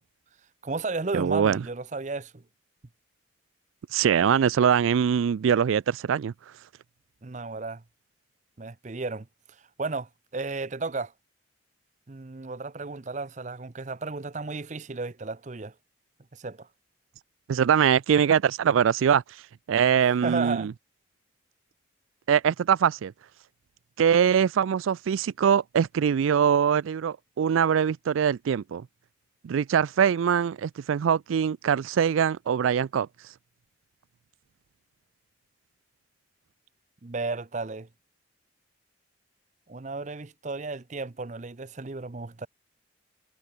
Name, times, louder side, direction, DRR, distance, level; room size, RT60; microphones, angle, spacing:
voice 1, 0.6-2.4 7.2-7.8 8.6-9.3 9.8-11.1 12.1-15.7 16.3-16.7 20.2-20.7 37.0-37.9 39.7-42.5, right 3 dB, 40° right, 0.6 m, -33 dB
voice 2, 1.1-1.6 3.9-6.3 17.5-19.2 19.7-20.7 22.3-23.1 24.0-28.8 29.4-33.1, right 8 dB, 85° right, 0.4 m, -23 dB
head